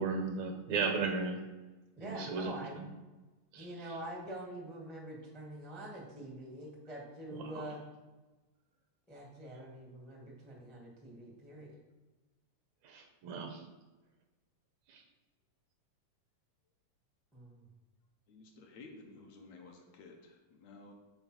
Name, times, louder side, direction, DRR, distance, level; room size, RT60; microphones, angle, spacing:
voice 1, 0.0-1.4 2.0-2.5 3.5-3.7 7.5-7.6 12.9-13.6, right 4 dB, 75° right, 4 dB, 2.1 m, -34 dB
voice 2, 2.0-2.8 3.6-7.8 9.1-11.8 17.3-17.6, right 1 dB, ahead, -2 dB, 0.6 m, -45 dB
voice 3, 18.3-20.9, left 3 dB, 70° left, 2 dB, 1.9 m, -54 dB
5.6 x 4.5 x 6.0 m, 1.2 s
omnidirectional pair, 3.4 m